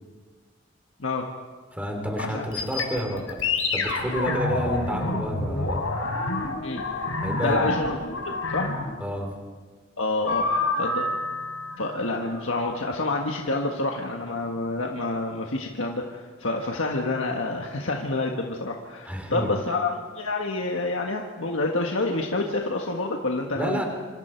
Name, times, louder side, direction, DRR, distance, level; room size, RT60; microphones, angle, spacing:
voice 1, 1.0-1.3 2.2-2.4 3.1-3.2 6.6-6.8 7.4-8.0 8.2-8.7 10.0-10.5 10.8-11.1 11.8-23.8, left 2 dB, 75° left, 1 dB, 1.6 m, -28 dB
voice 2, 1.7-3.4 3.7-6.0 7.2-7.7 9.0-9.4 19.0-19.6 23.5-23.8, equal, 5° right, 2 dB, 3.4 m, -30 dB
sound 1, 2.5-9.1 10.3-12.8, left 3 dB, 90° left, 4.2 m, -28 dB
26.5 x 26.5 x 4.6 m, 1.5 s
head